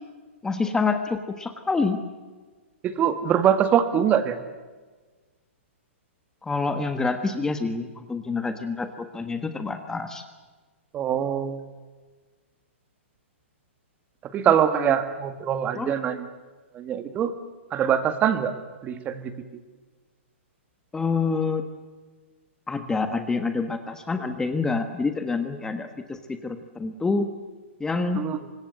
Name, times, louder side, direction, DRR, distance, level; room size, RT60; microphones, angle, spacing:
voice 1, 0.4-2.0 6.4-10.2 14.7-14.9 15.7-16.0 20.9-21.6 22.7-27.2 27.8-28.2, left 4 dB, 10° left, 8 dB, 1.4 m, -27 dB
voice 2, 2.8-4.4 10.9-11.6 14.3-16.3 16.7-17.3 17.7-18.5 18.8-19.3 28.2-28.4, right 9 dB, 20° right, 11 dB, 1.8 m, -23 dB
25.0 x 21.5 x 7.9 m, 1.4 s
hypercardioid pair, 145°, 7 cm